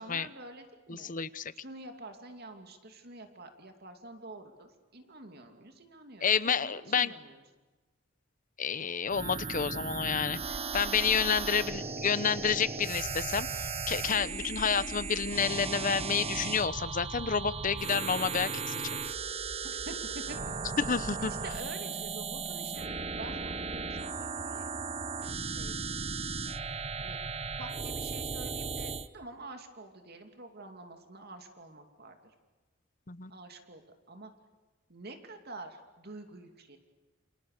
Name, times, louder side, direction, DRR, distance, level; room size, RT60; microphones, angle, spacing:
voice 1, 0.0-1.1 1.6-7.4 19.6-20.4 21.2-24.7 25.2-26.0 27.0-27.2 27.6-32.2 33.3-33.8 34.1-34.3 34.9-36.8, right 2 dB, 55° right, 5 dB, 2.6 m, -47 dB
voice 2, 0.9-1.5 6.2-7.1 8.6-10.4 10.7-13.5 13.9-18.7 20.8-21.3 33.1-33.3, left 6 dB, 45° left, 14 dB, 1.0 m, -29 dB
sound 1, 9.1-29.1, right 4 dB, 30° right, 1.0 m, -36 dB
29.0 x 27.5 x 6.7 m, 1.3 s
head